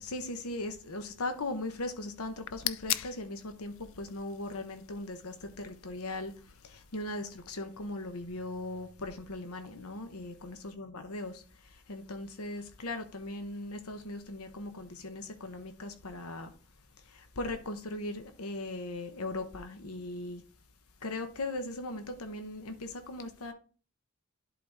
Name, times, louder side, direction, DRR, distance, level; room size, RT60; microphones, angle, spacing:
voice 1, 0.0-16.5 17.0-20.4 21.0-23.5, left 2 dB, 85° left, 0.9 m, -39 dB
sound 1, 2.3-7.4, left 14 dB, 60° left, 0.4 m, -41 dB
11.0 x 4.0 x 3.5 m
head